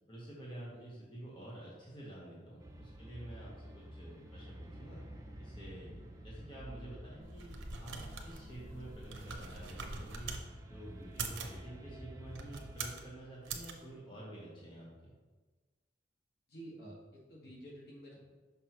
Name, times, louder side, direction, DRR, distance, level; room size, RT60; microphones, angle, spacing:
voice 1, 0.1-5.0 5.4-6.0 6.2-15.1, right 1 dB, 25° left, -6 dB, 1.2 m, -49 dB
sound 1, 2.6-12.9, equal, 15° right, 0.5 m, -50 dB
sound 2, 7.2-10.4 11.0-11.6 12.3-13.0 13.4-13.7, right 5 dB, 85° right, 0.7 m, -43 dB
voice 2, 16.5-18.3, right 1 dB, 55° left, -3 dB, 1.4 m, -51 dB
5.8 x 5.8 x 3.0 m, 1.3 s
head